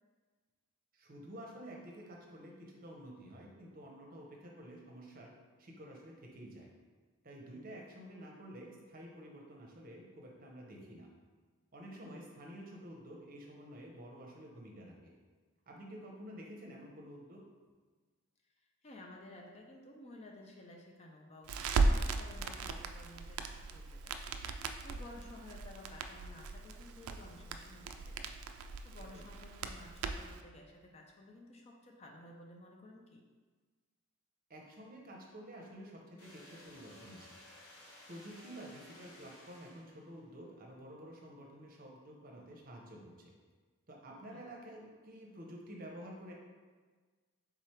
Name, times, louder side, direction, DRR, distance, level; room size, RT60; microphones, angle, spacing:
voice 1, 0.9-5.3 5.6-6.7 7.2-11.1 11.7-15.1 15.7-17.4 29.1-29.2 34.5-37.4 38.1-43.3 43.9-46.3, equal, 40° right, -1 dB, 0.7 m, -50 dB
voice 2, 18.8-33.2 44.3-44.4, left 1 dB, 30° left, 1 dB, 0.4 m, -54 dB
Crackle, 21.5-30.4, right 3 dB, 85° right, 0.3 m, -37 dB
sound 1, 36.2-40.2, left 1 dB, 80° left, 1.3 m, -56 dB
3.7 x 3.2 x 4.3 m, 1.4 s
head